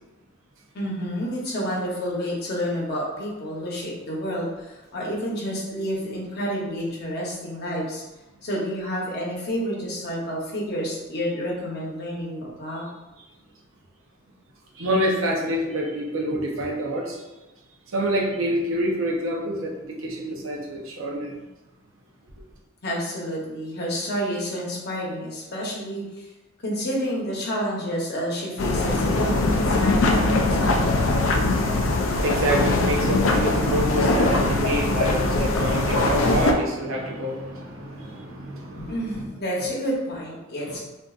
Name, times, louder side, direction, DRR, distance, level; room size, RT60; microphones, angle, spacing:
voice 1, 0.7-8.0 8.4-12.8 22.8-26.3 26.6-30.9 38.8-40.8, equal, 50° left, -4 dB, 0.9 m, -29 dB
voice 2, 14.7-17.2 17.9-21.3 31.2-39.1, right 1 dB, 75° right, -1 dB, 0.7 m, -27 dB
sound 1, 28.6-36.5, left 2 dB, 70° left, 0.4 m, -21 dB
3.7 x 2.5 x 2.4 m, 1.0 s
head